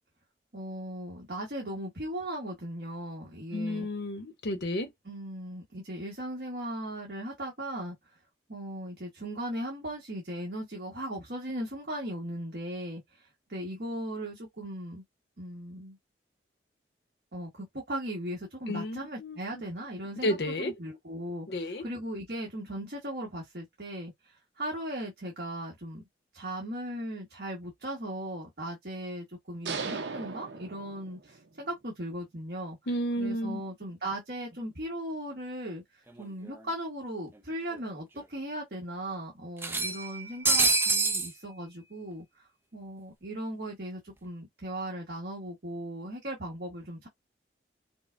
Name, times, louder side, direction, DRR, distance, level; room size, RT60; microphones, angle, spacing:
voice 1, 0.5-3.9 5.0-7.9 8.5-13.2 13.5-15.0 15.4-16.0 17.3-24.1 24.6-26.0 26.3-32.8 33.2-35.8 36.2-42.2 42.7-47.1, right 1 dB, 60° right, 1.4 m, -38 dB
voice 2, 3.5-4.9 18.7-19.4 20.2-20.7 21.5-21.8 32.9-33.6, left 1 dB, 65° left, 0.9 m, -31 dB
sound 1, 29.6-31.5, right 5 dB, 75° right, 0.8 m, -37 dB
sound 2, 36.2-36.3 36.6-36.7 37.7-37.8 38.2-38.3 39.6-41.3, right 3 dB, 10° right, 0.5 m, -26 dB
5.2 x 2.2 x 2.6 m
head